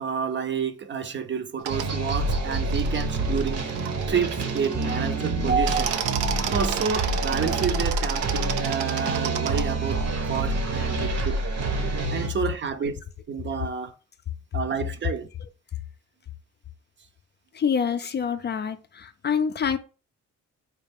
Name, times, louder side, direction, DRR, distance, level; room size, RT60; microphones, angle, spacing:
voice 1, 0.0-3.7 4.1-6.2 6.5-11.4 12.1-13.0 13.3-13.9 14.5-15.3, right 6 dB, 40° right, 0.6 m, -29 dB
sound 1, 1.6-1.9 2.7-5.1 5.5-9.6, right 9 dB, 90° right, 0.5 m, -32 dB
sound 2, 1.7-12.3, right 3 dB, 60° right, 1.0 m, -27 dB
voice 2, 17.5-19.8, left 7 dB, 35° left, 0.4 m, -26 dB
4.2 x 2.4 x 3.4 m
cardioid pair, 90°, 30 cm